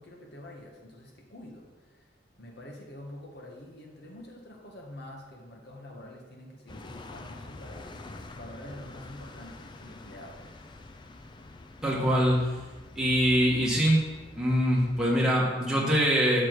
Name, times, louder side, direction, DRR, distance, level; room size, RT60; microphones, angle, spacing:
voice 1, 0.0-2.1 2.4-7.9 8.3-10.4, left 1 dB, 55° left, 0 dB, 1.5 m, -46 dB
sound 1, 6.7-15.1, left 2 dB, 25° left, 0.4 m, -46 dB
voice 2, 11.8-12.7 12.9-14.0 14.3-16.4, equal, 5° right, -6 dB, 1.7 m, -24 dB
6.9 x 6.2 x 4.7 m, 1.3 s
head